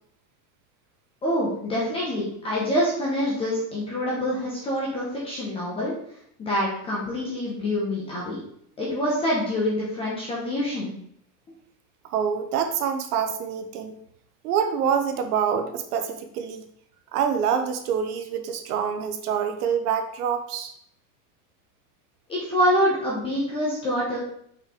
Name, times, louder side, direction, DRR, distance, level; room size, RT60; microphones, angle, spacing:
voice 1, 1.2-5.9 6.4-8.4 8.8-10.9 22.3-24.2, equal, 10° left, -5 dB, 0.8 m, -26 dB
voice 2, 12.1-13.9 14.4-16.6 17.1-20.7, right 7 dB, 80° right, 7 dB, 1.1 m, -26 dB
5.6 x 4.5 x 3.7 m, 0.68 s
supercardioid pair, 175°, 45 cm